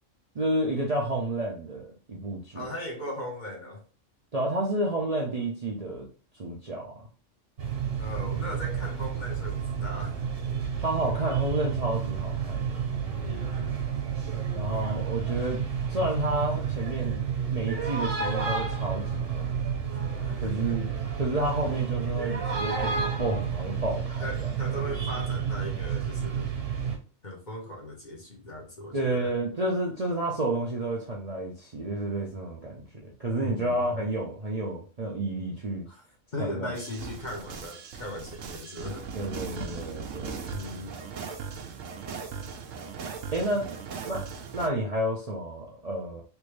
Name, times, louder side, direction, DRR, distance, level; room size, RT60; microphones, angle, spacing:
voice 1, 0.3-2.6 4.3-6.1 6.4-7.1 10.8-12.9 14.5-15.6 15.9-17.2 17.5-19.6 20.4-20.9 21.2-24.5 28.9-35.9 36.4-36.8 39.1-40.6 43.3-43.8 44.1-44.2 44.5-46.2, right 1 dB, 40° right, 0.6 m, -30 dB
voice 2, 2.5-3.8 8.0-10.2 13.1-13.8 20.2-21.0 24.2-26.5 27.2-29.3 33.4-34.0 35.9-36.0 36.3-39.1 40.5-41.0, left 1 dB, 40° left, 1.0 m, -38 dB
sound 1, 7.6-27.0, right 7 dB, 65° right, 1.4 m, -30 dB
sound 2, 36.8-44.7, right 5 dB, 80° right, 1.0 m, -39 dB
3.4 x 2.6 x 3.2 m
omnidirectional pair, 1.3 m